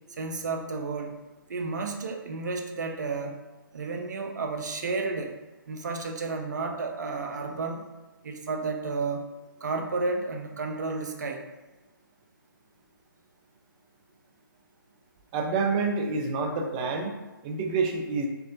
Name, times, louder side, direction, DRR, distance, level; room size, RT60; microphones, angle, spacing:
voice 1, 0.1-1.2 1.5-3.4 3.7-5.4 5.7-7.8 8.2-9.3 9.6-11.4, right 3 dB, 55° right, 3 dB, 0.8 m, -32 dB
voice 2, 15.3-17.1 17.4-18.3, right 4 dB, 20° right, 2 dB, 0.5 m, -27 dB
4.6 x 3.6 x 2.5 m, 1.1 s
figure-of-eight pair, 145°, 12 cm